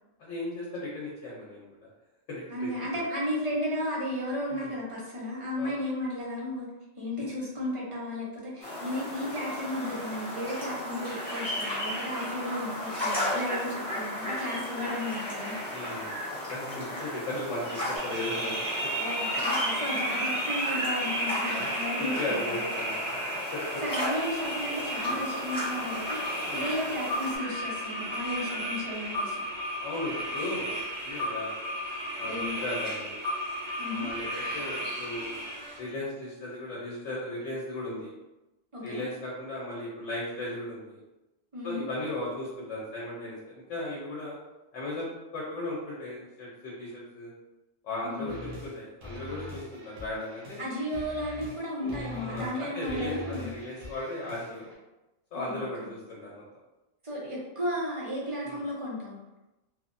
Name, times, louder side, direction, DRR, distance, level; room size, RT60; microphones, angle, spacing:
voice 1, 0.2-1.8 2.3-2.7 4.5-4.7 5.6-5.7 7.2-7.3 15.7-16.1 16.5-18.6 21.5-21.7 22.0-23.2 23.5-23.8 25.1-25.2 26.5-26.7 29.8-30.8 31.0-31.5 32.2-33.1 33.9-34.3 34.5-35.3 35.8-38.1 38.8-41.0 41.6-44.4 44.7-45.1 45.3-47.3 47.8-50.6 51.8-54.7 55.3-56.4 58.4-58.6, left 1 dB, 75° left, -5 dB, 1.0 m, -36 dB
voice 2, 2.5-6.7 7.0-15.6 19.0-22.6 23.8-29.3 32.2-32.5 33.8-34.1 38.7-39.0 41.5-41.8 48.0-48.3 50.6-53.5 55.3-55.7 57.0-59.2, left 1 dB, 35° right, -5 dB, 0.5 m, -34 dB
sound 1, 8.6-27.4, left 1 dB, 5° left, 0.7 m, -35 dB
sound 2, 17.9-35.8, equal, 65° right, 1.1 m, -33 dB
sound 3, 48.3-48.7 49.0-51.6 51.9-52.6 52.8-54.7, left 1 dB, 85° right, 1.1 m, -43 dB
3.1 x 2.1 x 2.5 m, 1.0 s
omnidirectional pair, 1.3 m